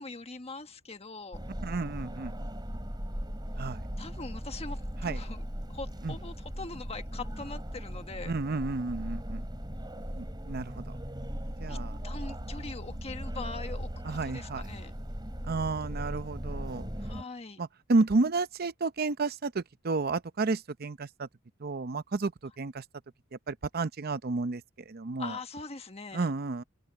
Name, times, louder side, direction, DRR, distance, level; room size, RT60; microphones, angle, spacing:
voice 1, 0.0-1.4 4.0-5.4 5.7-8.3 11.7-11.8 12.0-14.9 17.0-17.6 25.2-26.3, left 3 dB, 30° left, 1.4 m, -42 dB
sound 1, 1.3-17.2, equal, 20° right, 5.5 m, -38 dB
voice 2, 1.6-2.3 3.6-3.8 5.0-5.2 6.0-6.2 8.2-9.4 10.1-10.8 11.6-12.0 14.0-14.6 15.4-16.9 17.6-21.3 21.6-22.8 23.5-24.6 24.9-25.4 26.1-26.6, right 3 dB, 50° right, 0.7 m, -31 dB
Engine, 10.1-16.1, right 1 dB, 65° right, 1.6 m, -48 dB
open air
head